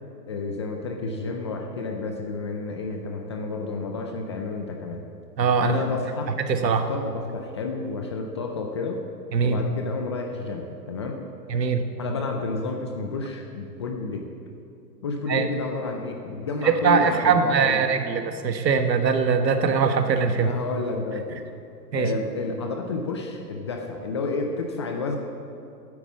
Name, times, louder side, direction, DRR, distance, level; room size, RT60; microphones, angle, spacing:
voice 1, 0.2-5.0 5.6-9.0 9.4-11.2 12.0-14.3 15.0-17.8 20.3-21.4 21.9-25.2, left 3 dB, 20° left, 3 dB, 0.4 m, -31 dB
voice 2, 5.4-5.8 6.5-6.8 9.3-9.6 11.5-11.8 15.3-15.4 16.6-20.5 21.9-22.1, right 5 dB, 85° right, 7 dB, 1.4 m, -21 dB
9.5 x 8.9 x 8.4 m, 2.6 s
hypercardioid pair, 135°, 49 cm